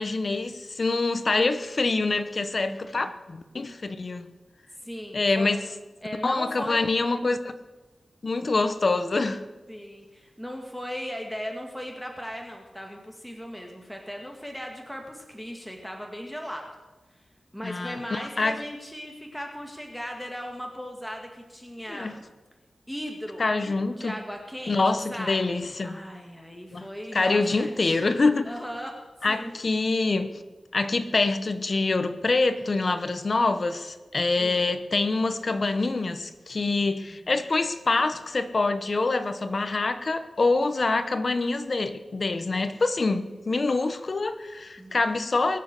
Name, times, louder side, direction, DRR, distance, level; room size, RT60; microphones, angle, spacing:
voice 1, 0.0-4.3 5.1-5.6 6.2-7.5 8.2-9.4 17.6-18.6 21.9-22.1 23.4-24.1 24.7-26.0 26.7-26.9 27.1-28.5 29.2-30.4 30.7-45.6, left 3 dB, 45° left, 1.1 m, -25 dB
voice 2, 2.6-3.1 4.8-5.5 6.0-6.9 9.7-16.7 17.5-22.2 22.9-23.5 24.0-24.8 25.1-28.0 28.5-29.0 29.3-29.5 34.4-34.8 37.1-37.3 44.8-45.0, equal, ahead, 1.8 m, -37 dB
22.0 x 7.4 x 6.7 m
wide cardioid pair, 105°, 0 cm